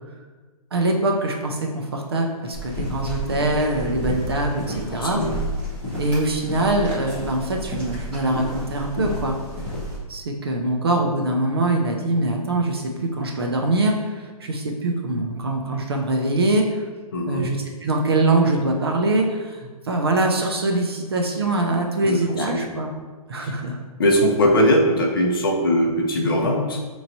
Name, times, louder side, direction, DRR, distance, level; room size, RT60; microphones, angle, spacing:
voice 1, 0.7-5.2 6.0-9.4 10.1-16.8 17.3-22.9 23.3-23.8, right 2 dB, 40° right, 1 dB, 0.4 m, -23 dB
sound 1, 2.5-10.0, equal, 15° right, 1.0 m, -30 dB
voice 2, 4.9-5.3 17.1-17.5 22.0-22.7 23.4-23.5 24.0-26.8, equal, 40° left, 1 dB, 0.5 m, -20 dB
5.3 x 3.0 x 2.6 m, 1.3 s
hypercardioid pair, 175°, 19 cm